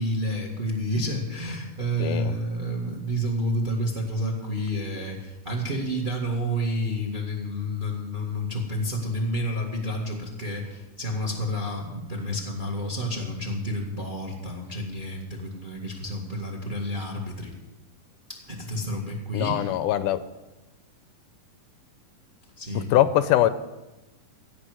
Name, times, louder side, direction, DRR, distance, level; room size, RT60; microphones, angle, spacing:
voice 1, 0.0-17.6 18.3-19.7 22.6-22.9, equal, 20° right, 2 dB, 1.4 m, -30 dB
voice 2, 2.0-2.3 19.3-20.2 22.9-23.5, left 13 dB, 80° left, 13 dB, 2.1 m, -22 dB
16.0 x 6.0 x 9.5 m, 1.0 s
omnidirectional pair, 3.8 m